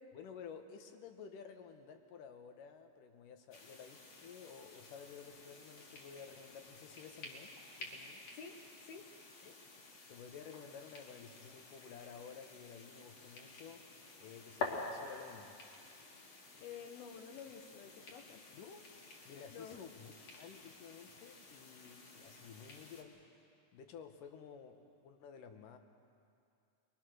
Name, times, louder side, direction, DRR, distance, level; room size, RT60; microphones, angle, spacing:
voice 1, 0.1-8.2 9.4-9.5 10.1-13.8 14.2-15.6 18.5-18.9 19.3-23.3 23.7-25.8, left 6 dB, 70° left, 6 dB, 2.6 m, -53 dB
sound 1, 3.5-23.0, left 3 dB, 50° left, 2.9 m, -50 dB
voice 2, 16.6-18.4 19.5-19.8, left 7 dB, 85° left, 5 dB, 3.1 m, -50 dB
24.5 x 22.5 x 6.3 m, 2.5 s
omnidirectional pair, 4.2 m